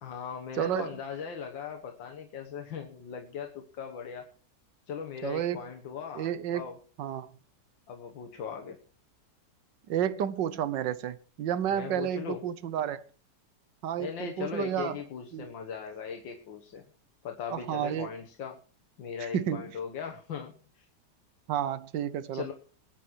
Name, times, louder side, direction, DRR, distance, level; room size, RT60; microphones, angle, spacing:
voice 1, 0.0-4.3 4.9-6.8 7.9-8.8 11.7-12.4 14.0-16.8 17.2-18.6 19.0-20.9 22.3-22.5, left 7 dB, 90° left, 2.0 m, -39 dB
voice 2, 0.6-0.9 5.2-5.6 6.1-6.6 7.0-7.3 9.9-13.0 13.8-15.0 15.3-15.5 17.5-18.1 19.2-19.7 21.5-22.5, right 10 dB, 75° right, 1.6 m, -31 dB
20.5 x 9.0 x 4.6 m
omnidirectional pair, 2.0 m